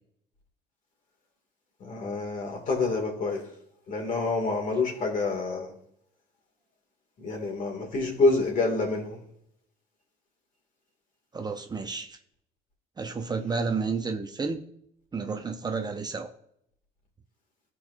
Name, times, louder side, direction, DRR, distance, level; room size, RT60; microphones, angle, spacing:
voice 1, 1.8-3.4 3.9-5.7 7.2-9.2, left 3 dB, 50° left, 1 dB, 2.1 m, -27 dB
voice 2, 11.3-12.2 13.0-14.6 15.1-16.3, right 4 dB, 25° right, 5 dB, 0.6 m, -31 dB
13.0 x 4.6 x 2.5 m, 0.71 s
cardioid pair, 110°, 17 cm